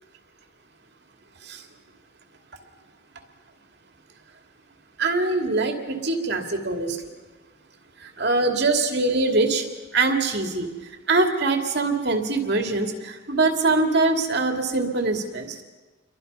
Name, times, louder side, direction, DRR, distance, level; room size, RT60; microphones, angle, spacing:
voice 1, 5.0-7.0 8.0-9.7 9.9-10.7 11.1-15.6, right 3 dB, 55° right, 4 dB, 2.6 m, -23 dB
29.5 x 23.5 x 5.6 m, 1.3 s
head